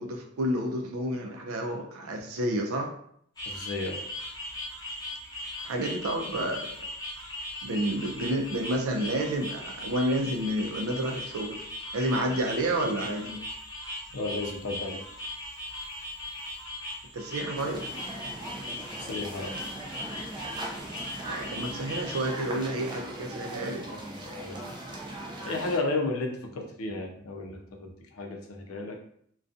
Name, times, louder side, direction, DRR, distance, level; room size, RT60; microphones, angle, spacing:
voice 1, 0.0-2.9 5.6-6.8 7.6-11.6 11.9-13.4 17.1-17.8 21.3-23.9, right 1 dB, 85° right, 2 dB, 0.5 m, -30 dB
sound 1, 3.4-22.3, left 1 dB, 20° left, 0.7 m, -39 dB
voice 2, 3.5-4.0 14.1-15.0 18.8-19.5 23.9-24.7 25.5-29.0, left 2 dB, 80° left, 2 dB, 0.5 m, -33 dB
sound 2, 17.5-25.8, right 1 dB, 20° right, 0.4 m, -39 dB
2.3 x 2.2 x 2.6 m, 0.66 s
head